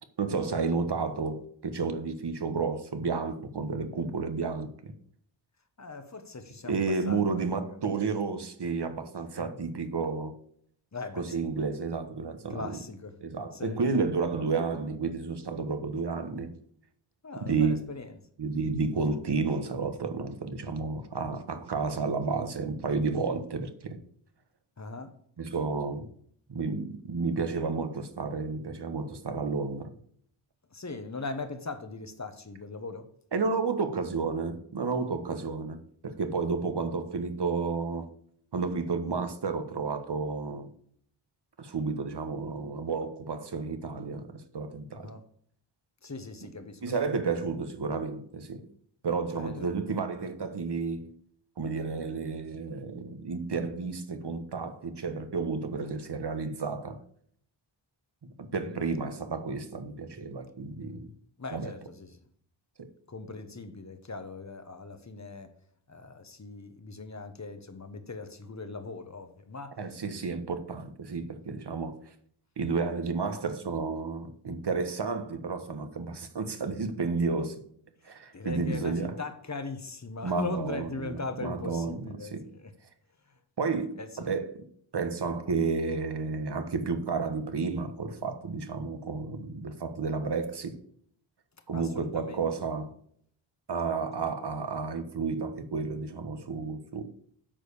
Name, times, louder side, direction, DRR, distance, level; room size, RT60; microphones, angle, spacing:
voice 1, 0.2-4.9 6.7-10.3 11.1-12.8 13.2-16.5 17.4-17.8 18.4-24.0 25.4-26.1 26.5-29.9 33.3-35.8 36.0-38.1 38.5-40.7 41.6-45.1 46.8-48.6 49.0-51.1 51.6-57.0 58.4-61.1 61.5-61.7 62.8-62.9 69.8-72.1 72.6-77.5 78.0-79.2 80.2-82.5 83.6-84.6 84.9-90.8 91.7-92.9 93.7-97.0, right 4 dB, 55° right, 1.4 m, -31 dB
voice 2, 5.8-7.8 9.4-9.6 10.9-11.4 12.5-13.2 13.5-13.8 17.2-18.1 24.8-25.1 30.7-33.1 44.9-45.2 46.0-46.8 49.3-49.7 58.5-58.8 61.4-62.2 63.1-65.5 65.9-69.8 78.0-82.7 84.0-84.3 91.7-92.4, left 3 dB, 35° left, 1.3 m, -40 dB
8.8 x 5.1 x 6.9 m
wide cardioid pair, 70°, 49 cm